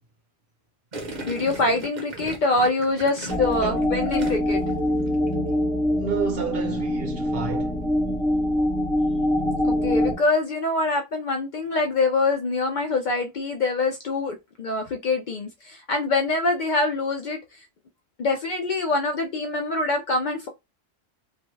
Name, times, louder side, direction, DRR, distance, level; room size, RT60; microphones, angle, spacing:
Gurgling, 0.9-4.7 5.0-5.4, right 1 dB, 45° right, 0.8 m, -37 dB
voice 1, 1.3-4.6 9.7-17.4 18.2-20.5, left 3 dB, 55° left, 0.6 m, -24 dB
sound 1, 3.3-10.2, left 1 dB, 5° left, 0.5 m, -24 dB
voice 2, 3.6-4.0 6.0-7.8, right 6 dB, 65° right, 1.1 m, -30 dB
2.6 x 2.2 x 3.1 m
omnidirectional pair, 1.1 m